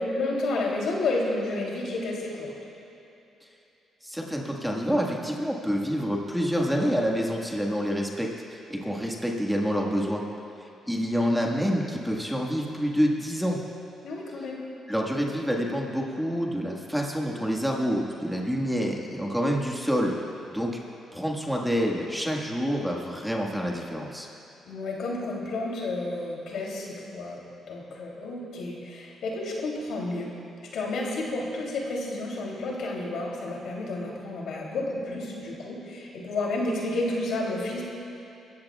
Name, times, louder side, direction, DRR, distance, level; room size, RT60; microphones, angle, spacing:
voice 1, 0.0-2.5 14.0-14.6 24.7-27.4 27.7-30.3 30.7-37.8, left 2 dB, 75° left, -2 dB, 3.0 m, -31 dB
voice 2, 4.0-10.2 10.9-13.6 14.9-20.2 20.5-20.7 21.1-24.3, equal, ahead, -1 dB, 1.7 m, -27 dB
24.5 x 14.5 x 2.4 m, 2.9 s
cardioid pair, 90°, 0 cm